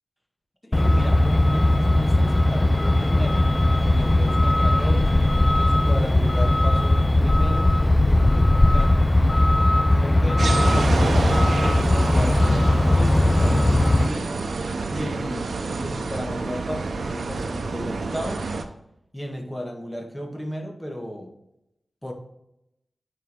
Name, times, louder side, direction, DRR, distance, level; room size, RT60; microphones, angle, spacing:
voice 1, 0.6-3.5 3.9-5.1 5.5-7.8 8.7-9.1 9.9-14.6 14.9-18.5 19.1-21.3 22.0-22.1, equal, 10° left, 2 dB, 1.7 m, -34 dB
Truck, 0.7-14.1, left 1 dB, 25° left, 0.4 m, -19 dB
sound 1, 10.4-18.6, right 3 dB, 85° right, 0.7 m, -28 dB
9.1 x 4.8 x 3.6 m, 0.83 s
cardioid pair, 50°, 0 cm